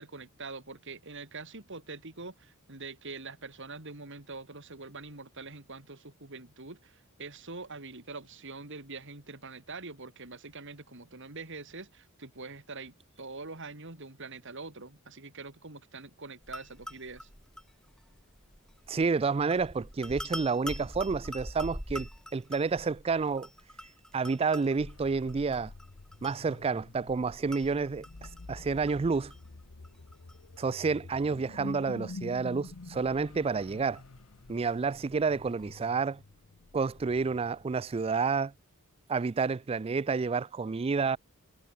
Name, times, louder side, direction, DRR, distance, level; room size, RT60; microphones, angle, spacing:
voice 1, 0.0-17.3, right 3 dB, 55° right, 3.1 m, -44 dB
sound 1, 16.4-35.9, equal, 5° left, 2.5 m, -46 dB
voice 2, 18.9-23.5 24.1-25.7 26.2-28.0 28.5-29.3 30.6-34.0 34.5-36.2 36.7-38.5 39.1-41.2, right 4 dB, 25° right, 0.3 m, -29 dB
sound 2, 24.7-38.0, left 3 dB, 80° left, 0.9 m, -48 dB
head